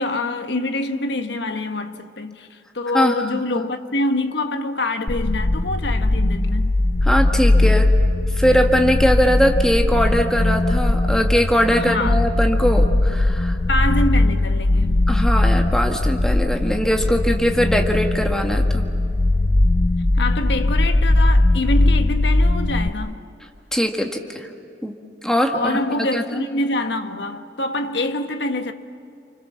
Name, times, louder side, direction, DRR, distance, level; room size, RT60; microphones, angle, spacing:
voice 1, 0.0-6.8 11.8-12.2 13.7-15.0 20.1-23.2 25.5-28.7, left 2 dB, 70° left, 1.4 m, -25 dB
voice 2, 2.9-3.3 3.5-3.7 7.0-7.9 8.4-13.6 15.1-18.8 23.7-24.5 24.8-24.9 25.2-26.4, equal, 5° left, 1.7 m, -21 dB
sound 1, 5.1-22.9, left 2 dB, 40° left, 0.5 m, -19 dB
29.5 x 25.5 x 7.3 m
head